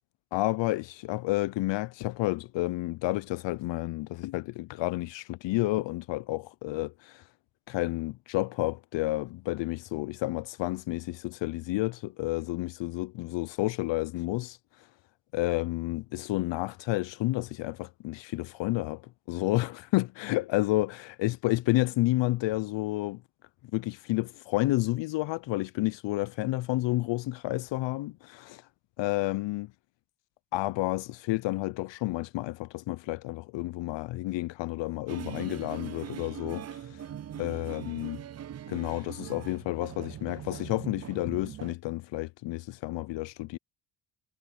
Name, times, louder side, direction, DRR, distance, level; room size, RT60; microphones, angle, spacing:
voice 1, 0.3-7.2 7.7-14.6 15.3-23.2 23.7-28.6 29.0-29.7 30.5-36.6 37.4-38.2 38.7-43.6, left 18 dB, 65° left, 0.7 m, -30 dB
sound 1, 35.1-41.8, right 10 dB, 35° right, 0.6 m, -41 dB
supercardioid pair, 65°, 47 cm